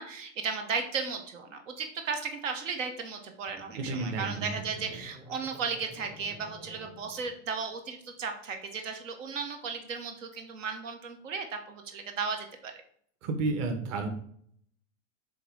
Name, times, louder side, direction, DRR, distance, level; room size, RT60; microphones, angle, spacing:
voice 1, 0.0-12.7, right 5 dB, 85° right, 5 dB, 1.3 m, -35 dB
sound 1, 3.5-7.7, left 1 dB, 10° right, 0.6 m, -51 dB
voice 2, 3.8-4.4 13.2-14.1, right 3 dB, 45° right, 5 dB, 1.3 m, -31 dB
7.8 x 3.1 x 4.7 m, 0.63 s
supercardioid pair, 130°, 37 cm